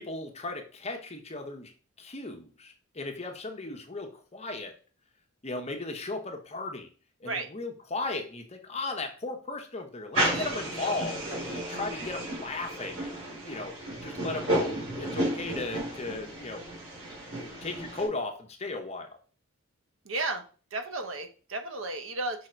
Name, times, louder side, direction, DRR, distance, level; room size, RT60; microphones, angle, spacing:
voice 1, 0.0-1.7 2.0-4.7 5.4-6.9 7.2-13.7 14.0-16.6 17.2-19.2, left 2 dB, 30° left, 5 dB, 0.9 m, -36 dB
sound 1, 10.1-18.1, right 1 dB, 85° right, 3.5 m, -33 dB
voice 2, 20.1-20.4 20.7-22.5, right 2 dB, 65° right, 6 dB, 1.0 m, -33 dB
5.7 x 3.8 x 4.4 m, 0.37 s
head